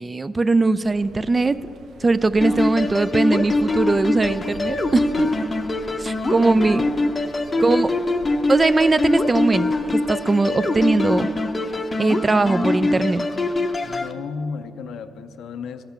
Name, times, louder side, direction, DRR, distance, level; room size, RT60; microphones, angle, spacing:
voice 1, 0.0-1.6 2.0-5.3 6.0-6.8 7.6-7.9 8.5-9.7 9.9-11.3 12.0-13.2, right 3 dB, 25° right, 15 dB, 0.3 m, -20 dB
sound 1, 0.8-11.3, right 2 dB, 65° right, 0.7 m, -45 dB
sound 2, 2.4-14.1, left 2 dB, 25° left, 0.6 m, -23 dB
voice 2, 6.3-7.1 7.5-8.1 8.3-8.4 12.8-13.0 13.8-15.8, left 5 dB, 75° left, 10 dB, 0.5 m, -34 dB
14.5 x 5.8 x 5.6 m, 3.0 s
cardioid pair, 90°, 0 cm